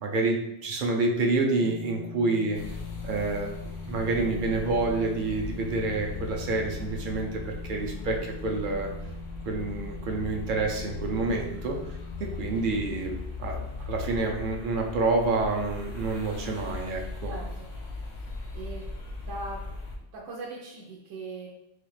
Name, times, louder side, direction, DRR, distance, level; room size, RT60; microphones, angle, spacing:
voice 1, 0.0-2.6 3.0-8.9 9.5-11.8 12.2-17.3, right 3 dB, 55° right, 1 dB, 0.6 m, -28 dB
sound 1, 1.6-13.1, left 7 dB, 60° left, 0.6 m, -44 dB
sound 2, 2.5-20.0, left 3 dB, 90° left, 1.0 m, -38 dB
voice 2, 17.3-17.7 18.5-18.9 19.2-19.7 20.1-21.5, right 2 dB, 90° right, -4 dB, 1.0 m, -39 dB
4.1 x 2.3 x 3.1 m, 0.85 s
omnidirectional pair, 1.2 m